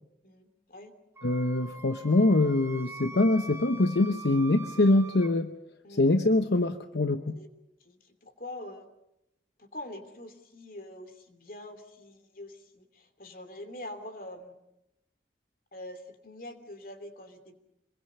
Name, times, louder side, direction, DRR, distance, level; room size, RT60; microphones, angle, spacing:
voice 1, 0.2-0.9 5.8-6.1 7.3-7.5 7.8-8.9 9.6-14.6 15.7-17.6, left 1 dB, 50° left, 7 dB, 2.9 m, -44 dB
voice 2, 1.2-5.5 5.9-7.4, left 2 dB, 70° left, 8 dB, 0.9 m, -24 dB
Wind instrument woodwind instrument, 1.2-5.3, right 2 dB, 15° right, 1.1 m, -44 dB
26.0 x 22.5 x 6.7 m, 0.86 s
head